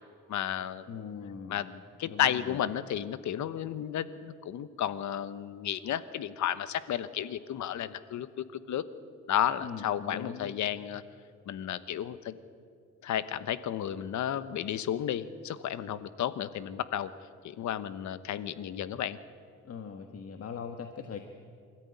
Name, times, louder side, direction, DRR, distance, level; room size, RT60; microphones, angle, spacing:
voice 1, 0.3-0.9 1.5-8.8 9.3-11.0 11.5-12.3 13.0-17.1 17.4-19.2, left 10 dB, 70° left, 14 dB, 1.1 m, -33 dB
voice 2, 0.9-1.6 2.0-2.6 9.6-10.5 19.6-21.2, left 6 dB, 50° left, 6 dB, 1.5 m, -41 dB
25.5 x 14.0 x 9.7 m, 2.3 s
cardioid pair, 90°, 30 cm